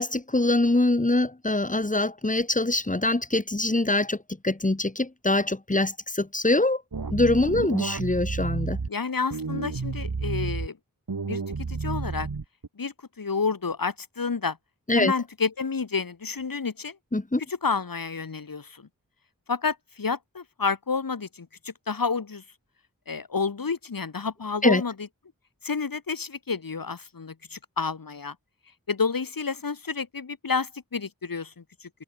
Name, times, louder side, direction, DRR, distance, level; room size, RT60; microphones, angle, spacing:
voice 1, 0.0-4.2 4.4-6.8 7.1-8.8 14.9-15.1 17.1-17.4 24.6-24.8, left 2 dB, 25° left, 2.6 m, -24 dB
sound 1, 6.9-8.9 9.3-10.7 11.1-12.7, right 4 dB, 80° right, 4.4 m, -31 dB
voice 2, 8.9-10.8 11.2-11.4 11.7-12.3 12.8-14.6 14.9-17.0 17.5-18.9 19.5-22.4 23.1-25.1 25.6-28.4 28.9-31.9, left 5 dB, 75° left, 2.2 m, -30 dB
open air
wide cardioid pair, 70°, 34 cm